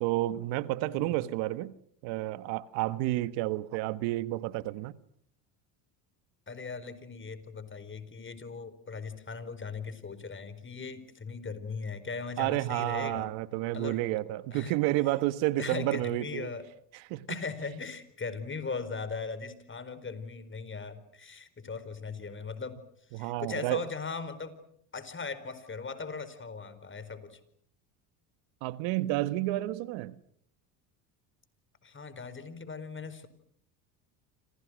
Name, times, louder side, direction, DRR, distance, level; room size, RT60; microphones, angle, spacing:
voice 1, 0.0-1.7 2.0-5.0 12.4-16.5 17.1-17.3 23.1-23.8 28.6-30.2, right 17 dB, 80° right, 1.4 m, -30 dB
voice 2, 0.8-1.3 6.5-13.3 13.7-14.0 14.5-14.8 15.6-16.6 17.3-22.8 23.1-24.5 24.9-27.4 31.8-33.3, left 4 dB, 25° left, 4.4 m, -39 dB
30.0 x 26.5 x 6.4 m
supercardioid pair, 95°, 45 cm